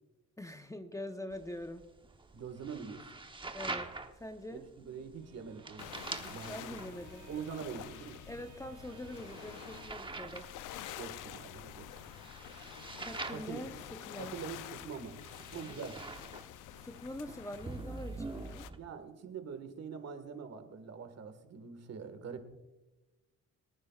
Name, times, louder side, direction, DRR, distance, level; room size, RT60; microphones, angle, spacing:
voice 1, 0.4-1.8 3.5-3.9 4.2-4.6 6.5-7.3 8.3-10.5 13.0-14.4 15.7-15.8 16.8-18.7, left 1 dB, 10° left, 7 dB, 0.8 m, -44 dB
sound 1, 1.3-18.8, right 3 dB, 15° right, 1.0 m, -46 dB
voice 2, 2.3-3.2 4.5-6.8 7.3-8.2 10.9-11.9 13.3-13.7 14.2-16.0 18.7-22.5, right 6 dB, 60° right, 8 dB, 1.7 m, -44 dB
Bowed string instrument, 5.0-10.4, right 7 dB, 80° right, 4.9 m, -59 dB
sound 2, 5.8-18.7, left 12 dB, 85° left, 0.6 m, -48 dB
25.0 x 9.6 x 2.4 m, 1.1 s
cardioid pair, 90°, 30 cm